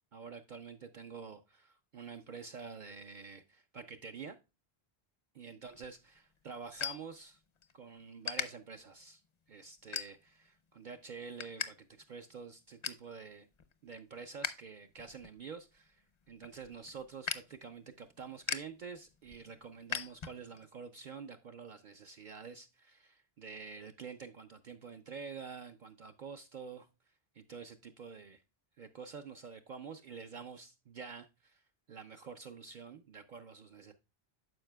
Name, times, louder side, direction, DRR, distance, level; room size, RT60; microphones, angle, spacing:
voice 1, 0.1-4.4 5.4-7.4 7.7-9.2 9.5-13.5 13.8-26.9 27.3-28.4 28.8-33.9, right 5 dB, 60° right, 0.6 m, -48 dB
sound 1, 5.7-7.7 8.2-8.5 9.0-9.3 9.9-10.5 10.9-11.7 12.0-12.1 12.4-13.1 13.5-14.6 14.9-20.7, left 6 dB, 45° left, 0.4 m, -41 dB
12.0 x 4.8 x 2.2 m
omnidirectional pair, 1.0 m